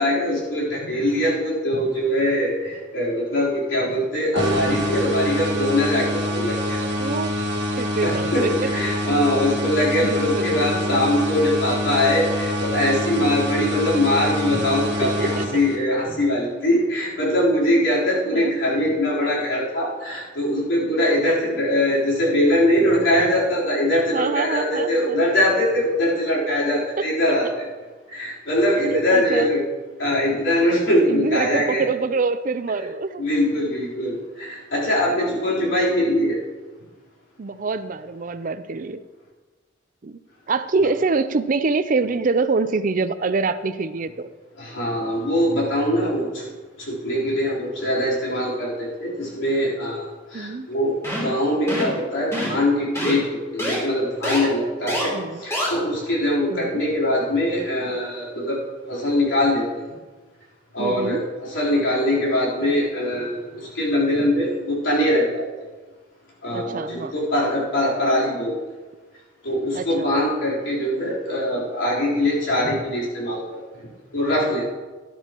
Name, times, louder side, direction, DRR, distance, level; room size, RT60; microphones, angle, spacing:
voice 1, 0.0-6.8 8.0-27.7 28.1-29.6 30.0-31.8 33.2-36.4 40.8-40.9 44.6-46.5 46.8-58.6 58.9-59.9 60.7-65.4 66.4-68.5 69.4-73.6 74.1-74.6, left 1 dB, 80° left, -6 dB, 3.7 m, -22 dB
sound 1, 4.4-16.1, left 1 dB, 60° right, 1.7 m, -26 dB
voice 2, 7.0-7.4 7.8-8.5 9.9-11.0 15.0-15.4 18.3-18.5 24.1-25.2 27.0-27.1 27.4-27.5 28.9-29.5 31.0-33.3 37.4-39.0 40.0-40.2 40.5-44.3 50.3-50.7 55.1-55.4 56.5-56.9 60.8-61.2 66.5-67.1 69.7-70.1, right 4 dB, 45° right, 12 dB, 0.5 m, -25 dB
sound 2, 51.0-51.3 51.7-52.0 52.3-52.6 52.9-53.1 53.6-53.8 54.2-54.4 54.9-55.0 55.5-55.7, equal, 15° left, 3.2 m, -25 dB
12.5 x 11.5 x 3.0 m, 1.3 s
head